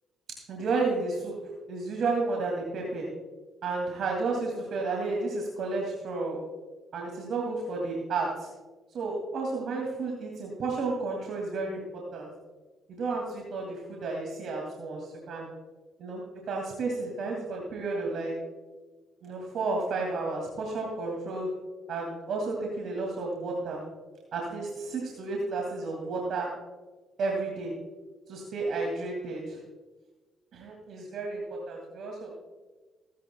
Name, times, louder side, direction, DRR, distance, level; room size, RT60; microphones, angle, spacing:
voice 1, 0.5-1.3 1.7-3.0 3.6-6.4 6.9-8.3 8.9-11.8 12.1-12.3 13.0-15.5 16.0-16.2 16.5-18.3 19.2-21.5 21.9-23.8 24.3-26.5 27.2-27.7 28.3-29.4 30.5-31.4 31.7-32.3, right 3 dB, 65° right, -1 dB, 2.4 m, -32 dB
23.5 x 10.5 x 2.3 m, 1.3 s
supercardioid pair, 65°, 0 cm